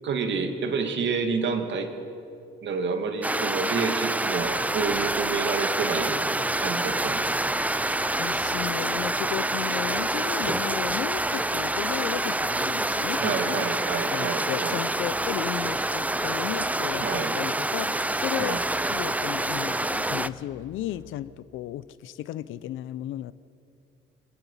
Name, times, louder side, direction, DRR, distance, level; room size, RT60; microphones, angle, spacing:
voice 1, 0.0-1.9 2.6-7.5 13.2-14.8 17.0-17.3 18.4-18.6, right 5 dB, 65° right, 6 dB, 2.5 m, -29 dB
sound 1, 3.2-20.3, right 1 dB, 5° right, 0.5 m, -27 dB
sound 2, 4.3-21.1, left 6 dB, 55° left, 2.2 m, -50 dB
voice 2, 8.2-13.7 14.1-23.3, left 13 dB, 90° left, 17 dB, 0.7 m, -34 dB
27.5 x 21.0 x 5.8 m, 2.6 s
cardioid pair, 90°, 20 cm